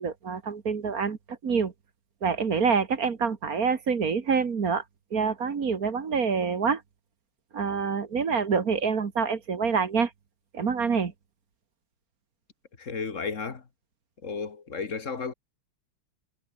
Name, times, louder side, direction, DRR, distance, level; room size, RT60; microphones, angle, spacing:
voice 1, 0.0-1.7 2.2-4.8 5.1-6.8 7.5-10.1 10.5-11.1, right 5 dB, 45° right, 2.0 m, -26 dB
voice 2, 12.8-13.7 14.2-15.3, left 5 dB, 40° left, 2.0 m, -33 dB
omnidirectional pair, 2.3 m